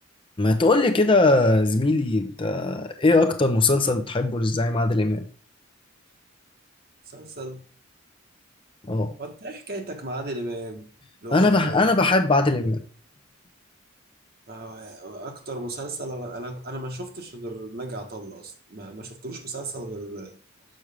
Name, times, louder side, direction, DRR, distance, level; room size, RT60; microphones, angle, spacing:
voice 1, 0.4-5.3 8.9-9.1 11.3-12.8, left 2 dB, 25° left, 0.6 m, -20 dB
voice 2, 7.1-7.6 9.2-10.9 11.2-11.9 14.5-20.3, right 2 dB, 50° right, 1.4 m, -35 dB
6.5 x 6.1 x 3.4 m
head